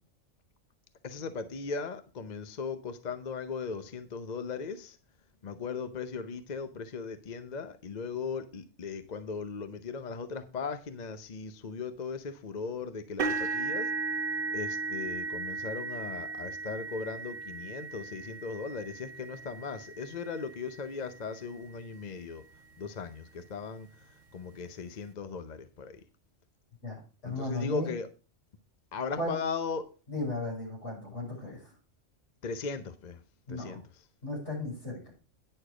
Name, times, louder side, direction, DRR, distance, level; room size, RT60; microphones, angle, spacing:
voice 1, 1.0-5.0 5.4-14.2 14.5-22.4 22.8-23.9 24.3-26.0 27.2-28.1 28.9-29.9 32.4-33.2 33.5-33.8, left 5 dB, 40° left, 0.7 m, -38 dB
sound 1, 13.2-21.2 21.9-22.1 22.5-22.6 24.0-24.1, right 4 dB, 90° right, 1.4 m, -36 dB
voice 2, 26.8-27.9 29.2-29.3 30.1-31.7 33.5-33.8 34.2-35.1, left 2 dB, 70° left, 6.8 m, -35 dB
9.9 x 6.6 x 4.9 m
omnidirectional pair, 1.3 m